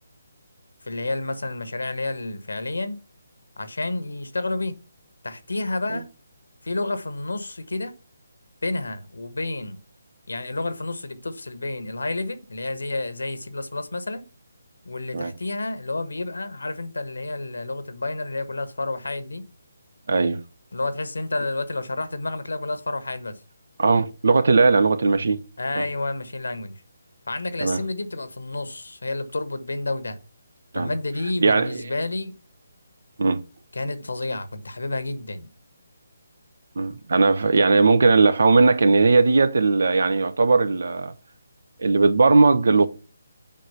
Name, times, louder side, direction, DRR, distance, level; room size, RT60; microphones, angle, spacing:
voice 1, 0.8-3.0 3.6-4.7 5.2-6.1 6.6-8.0 8.6-9.8 10.3-14.3 14.8-19.4 20.7-23.4 25.6-26.8 27.3-30.2 30.7-32.3 33.7-35.5, left 2 dB, 70° left, 1.2 m, -30 dB
voice 2, 20.1-20.4 23.8-25.4 25.7-25.8 27.6-27.8 30.7-30.9 31.4-31.8 33.2-33.4 36.8-41.1 41.8-42.9, right 3 dB, 55° right, 0.8 m, -18 dB
7.6 x 5.0 x 5.8 m
figure-of-eight pair, 145°, 0 cm